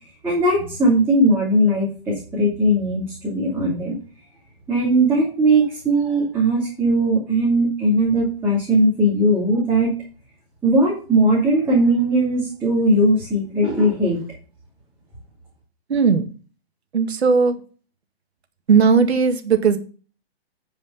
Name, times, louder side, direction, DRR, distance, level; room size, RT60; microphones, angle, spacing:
voice 1, 0.2-3.9 4.7-9.9 10.6-14.2, right 1 dB, 5° right, -7 dB, 2.7 m, -19 dB
voice 2, 15.9-16.3 16.9-17.6 18.7-19.8, right 5 dB, 80° right, 7 dB, 1.9 m, -17 dB
10.0 x 5.1 x 5.6 m, 0.37 s
hypercardioid pair, 165°, 32 cm